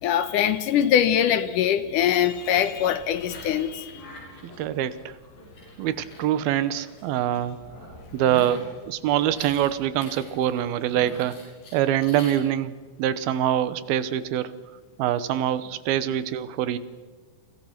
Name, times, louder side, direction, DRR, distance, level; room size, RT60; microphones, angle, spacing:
voice 1, 0.0-4.0, left 10 dB, 70° left, 13 dB, 2.3 m, -22 dB
sound 1, 2.2-12.4, left 2 dB, 85° left, 8.4 m, -45 dB
voice 2, 4.6-5.1 5.8-7.6 8.1-11.4 11.7-12.7 13.0-14.5 15.0-16.8, right 11 dB, 85° right, 15 dB, 2.9 m, -24 dB
30.0 x 23.5 x 5.9 m, 1.3 s
omnidirectional pair, 4.2 m